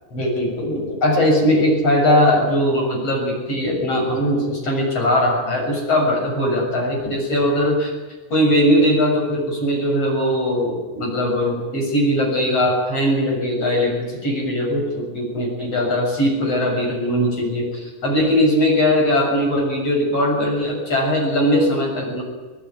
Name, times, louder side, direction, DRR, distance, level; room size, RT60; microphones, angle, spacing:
voice 1, 0.1-7.9 8.3-22.2, equal, 30° left, 1 dB, 7.6 m, -20 dB
24.0 x 19.5 x 9.5 m, 1.3 s
omnidirectional pair, 5.9 m